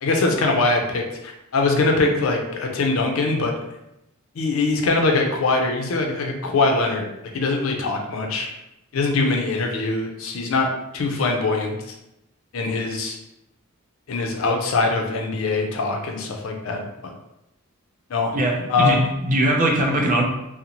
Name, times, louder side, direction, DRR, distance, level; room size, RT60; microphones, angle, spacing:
voice 1, 0.0-3.5 4.4-7.1 7.3-8.5 8.9-11.8 12.5-13.2 14.1-17.1 18.1-18.4 18.7-19.0, left 3 dB, 70° left, 2 dB, 0.5 m, -22 dB
voice 2, 18.3-20.2, right 1 dB, 40° right, 1 dB, 0.4 m, -20 dB
2.5 x 2.0 x 2.9 m, 0.88 s
head